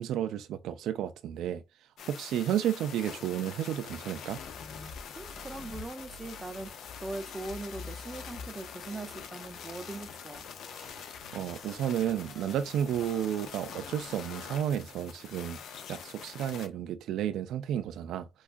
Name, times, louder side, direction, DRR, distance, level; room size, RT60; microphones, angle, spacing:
voice 1, 0.0-1.6 2.1-4.4 10.8-11.0 11.3-15.6 15.9-18.3, right 10 dB, 80° right, 0.3 m, -32 dB
sound 1, 2.0-16.7, left 7 dB, 75° left, 0.6 m, -45 dB
sound 2, 4.2-14.4, left 3 dB, 40° left, 1.1 m, -50 dB
voice 2, 5.1-10.5, right 2 dB, 20° right, 0.6 m, -41 dB
4.4 x 2.3 x 2.4 m
cardioid pair, 90°, 0 cm